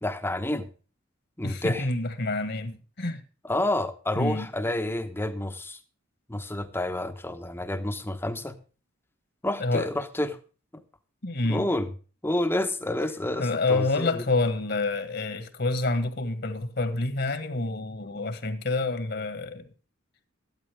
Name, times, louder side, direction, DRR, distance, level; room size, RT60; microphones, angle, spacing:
voice 1, 0.0-0.7 1.4-1.9 3.4-5.8 6.3-8.5 9.4-10.4 10.7-10.8 11.5-11.9 12.2-14.3, left 1 dB, 10° left, 1.0 m, -29 dB
voice 2, 1.4-3.2 4.1-4.5 9.6-9.9 11.2-11.6 13.4-19.7, left 2 dB, 55° left, 1.7 m, -28 dB
13.5 x 12.5 x 3.5 m
head